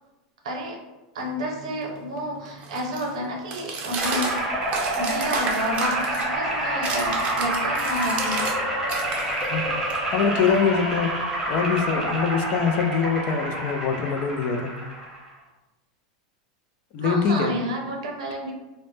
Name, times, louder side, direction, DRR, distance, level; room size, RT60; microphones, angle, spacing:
voice 1, 0.4-0.8 1.1-4.6 4.9-8.4 17.0-18.5, equal, 85° right, 0 dB, 0.7 m, -30 dB
sound 1, 1.2-8.6 8.9-11.1, right 4 dB, 40° right, 0.5 m, -34 dB
sound 2, 3.9-15.3, right 1 dB, ahead, 0.9 m, -27 dB
voice 2, 10.1-11.1 11.5-14.7 16.9-17.5, left 6 dB, 55° left, 5 dB, 0.4 m, -23 dB
2.1 x 2.0 x 3.1 m, 1.1 s
supercardioid pair, 120°, 3 cm